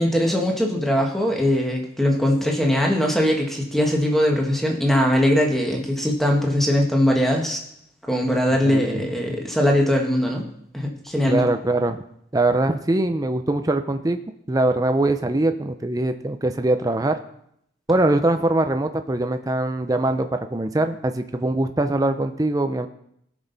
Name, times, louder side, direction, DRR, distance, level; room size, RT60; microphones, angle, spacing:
voice 1, 0.0-7.6 8.1-10.4 10.7-11.4, equal, ahead, 0 dB, 1.4 m, -21 dB
voice 2, 8.6-9.0 11.3-12.0 12.3-14.2 14.5-17.2 17.9-22.9, right 2 dB, 15° right, 7 dB, 0.5 m, -22 dB
18.0 x 6.3 x 4.0 m, 0.73 s
head